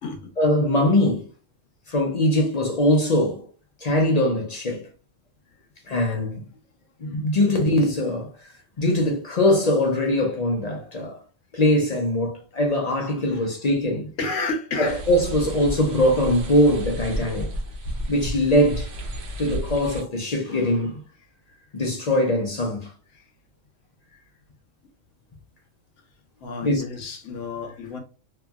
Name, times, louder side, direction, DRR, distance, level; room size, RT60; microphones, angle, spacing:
voice 1, 0.4-1.3 1.9-3.5 3.8-4.8 5.9-6.4 7.0-11.2 11.5-14.1 14.8-17.5 18.1-18.9 19.4-21.0 21.7-22.9 26.6-26.8, left 1 dB, 50° left, 0.5 m, -22 dB
voice 2, 14.2-15.0 21.5-21.7 23.1-23.3 24.1-24.2 26.4-28.0, left 3 dB, 75° left, 1.1 m, -31 dB
sound 1, 14.8-20.0, equal, 60° right, 0.9 m, -32 dB
2.9 x 2.6 x 2.3 m
omnidirectional pair, 1.3 m